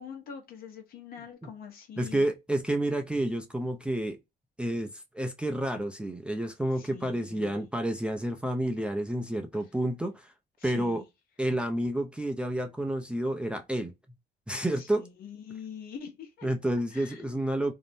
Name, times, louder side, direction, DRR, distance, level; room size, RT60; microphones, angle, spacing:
voice 1, 0.0-2.3 6.7-7.6 10.6-11.0 14.8-16.5 16.9-17.4, left 7 dB, 60° left, 0.9 m, -44 dB
voice 2, 2.0-4.2 4.6-10.3 10.6-11.0 11.4-13.9 14.5-15.1 16.4-17.7, right 1 dB, 5° right, 0.4 m, -30 dB
2.6 x 2.0 x 3.3 m
cardioid pair, 110°, 17 cm